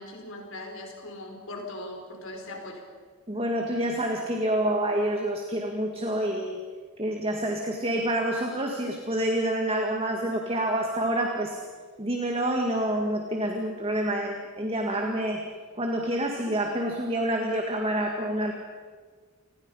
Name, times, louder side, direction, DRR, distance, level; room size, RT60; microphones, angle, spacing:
voice 1, 0.0-2.8, left 1 dB, 60° left, 2 dB, 5.0 m, -39 dB
voice 2, 3.3-6.6 7.0-11.6 12.0-15.4 15.7-18.5, right 1 dB, 25° right, 2 dB, 2.0 m, -27 dB
29.5 x 20.5 x 5.6 m, 1.6 s
head